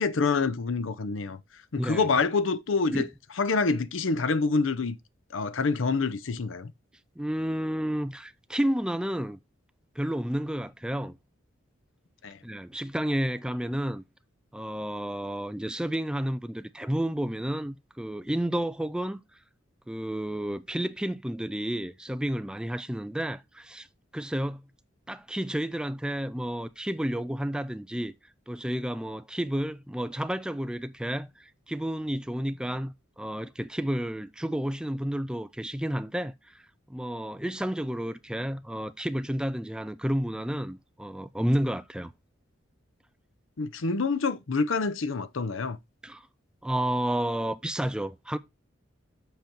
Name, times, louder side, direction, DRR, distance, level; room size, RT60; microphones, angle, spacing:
voice 1, 0.0-1.4 1.7-3.1 3.4-5.0 5.3-6.7 12.2-12.4 43.6-45.8, left 4 dB, 80° left, 0.7 m, -27 dB
voice 2, 7.2-9.4 10.0-11.2 12.4-14.0 14.5-19.2 19.9-23.9 24.1-24.6 25.1-28.1 28.5-36.6 36.9-42.1 46.0-46.3 46.6-48.4, right 1 dB, 5° right, 0.4 m, -31 dB
7.9 x 5.2 x 4.5 m
head